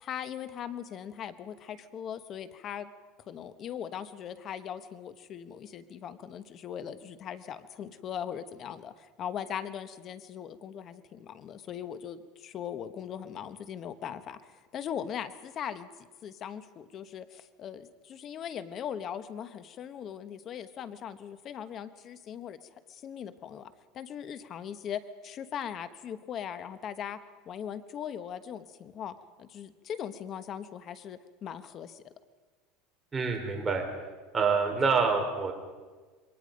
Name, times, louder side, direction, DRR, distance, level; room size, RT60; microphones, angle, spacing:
voice 1, 0.0-2.9 3.3-15.9 16.2-22.6 22.9-27.2 27.5-32.0, left 9 dB, 35° left, 12 dB, 1.2 m, -40 dB
voice 2, 33.1-33.8 34.3-35.5, right 5 dB, 15° right, 2 dB, 3.9 m, -26 dB
27.5 x 22.5 x 5.3 m, 1.4 s
supercardioid pair, 140°, 0 cm